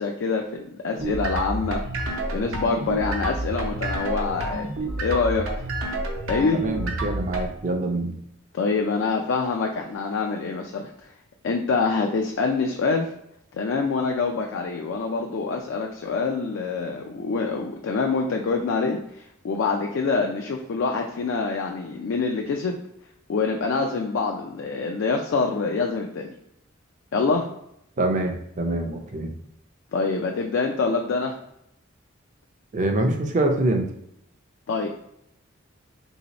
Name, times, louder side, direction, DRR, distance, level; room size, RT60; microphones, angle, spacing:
voice 1, 0.0-1.8 2.3-4.7 5.0-5.5 6.3-6.6 8.5-10.9 11.4-13.1 13.5-22.8 23.3-26.3 27.1-27.5 29.9-31.4 34.7-34.9, left 4 dB, 60° left, 2 dB, 0.3 m, -25 dB
sound 1, 0.9-7.5, right 2 dB, 75° right, 0.7 m, -29 dB
voice 2, 6.5-8.2 28.0-29.3 32.7-33.9, right 2 dB, 35° right, 3 dB, 0.4 m, -25 dB
3.4 x 2.7 x 2.9 m, 0.78 s
head